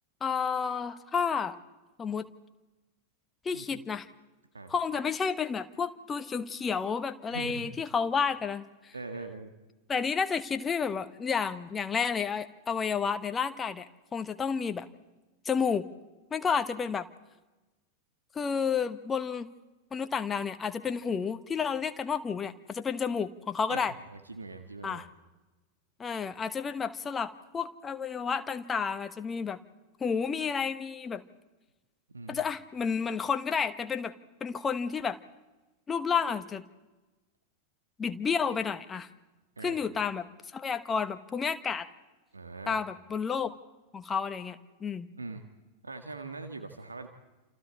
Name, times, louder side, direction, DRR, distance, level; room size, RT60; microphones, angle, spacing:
voice 1, 0.2-1.6 2.0-2.3 3.4-4.1 4.7-8.9 9.9-14.9 15.4-15.9 16.3-17.1 18.3-19.5 19.9-23.9 24.8-25.0 26.0-29.6 30.0-31.2 32.3-34.1 34.4-35.2 35.9-36.6 38.0-39.1 39.6-41.9 42.7-43.5 43.9-45.1, left 6 dB, 20° left, 10 dB, 1.2 m, -31 dB
voice 2, 7.3-7.7 8.9-9.5 23.7-25.0 32.1-32.4 39.6-40.0 42.3-42.8 45.2-45.4 45.8-47.1, right 3 dB, 75° right, 6 dB, 1.6 m, -42 dB
28.5 x 28.0 x 4.4 m, 1.1 s
figure-of-eight pair, 90°, 0 cm